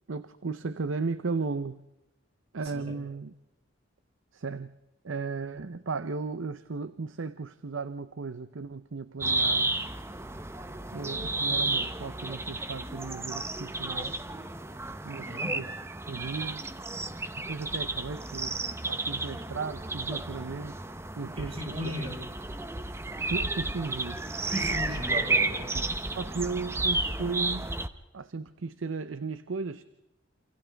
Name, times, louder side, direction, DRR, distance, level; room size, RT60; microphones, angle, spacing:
voice 1, 0.1-1.8 2.5-3.3 4.3-4.7 5.0-9.8 10.9-14.1 15.0-15.7 16.1-16.7 17.5-18.6 18.9-20.8 21.2-21.6 21.8-21.9 23.2-24.2 25.7-25.8 26.2-27.7 28.1-29.8, right 4 dB, 80° right, 13 dB, 0.7 m, -35 dB
sound 1, 9.2-27.9, right 2 dB, 15° right, 0.8 m, -32 dB
voice 2, 15.2-15.6 21.3-22.2 24.4-25.7, equal, 30° right, 1 dB, 4.8 m, -36 dB
28.5 x 28.0 x 3.5 m, 0.95 s
head